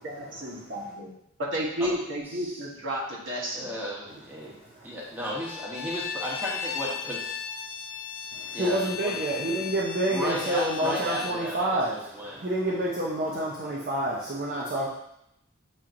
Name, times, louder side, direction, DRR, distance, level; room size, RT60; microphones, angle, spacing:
voice 1, 0.0-1.1 1.4-3.7, equal, 60° right, -4 dB, 1.2 m, -32 dB
voice 2, 3.5-4.6 4.8-7.3 8.5-9.3 10.1-12.5, equal, 10° right, -5 dB, 0.8 m, -34 dB
voice 3, 4.1-4.9 8.3-14.9, right 1 dB, 45° right, -5 dB, 0.7 m, -29 dB
Bowed string instrument, 5.3-11.4, left 7 dB, 85° left, 0.4 m, -36 dB
7.3 x 2.9 x 2.5 m, 0.79 s
head